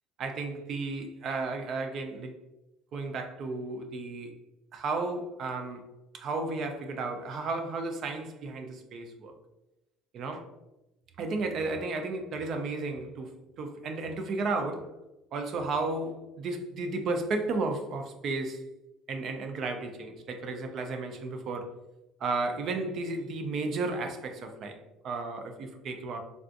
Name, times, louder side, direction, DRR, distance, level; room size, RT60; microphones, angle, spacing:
voice 1, 0.2-2.3 2.9-4.4 4.7-5.9 6.1-9.3 10.1-10.4 11.2-13.3 13.6-14.9 15.3-18.6 19.1-21.7 22.2-26.2, right 3 dB, 50° right, 5 dB, 0.4 m, -33 dB
3.4 x 2.4 x 2.5 m, 0.95 s
cardioid pair, 125°, 0 cm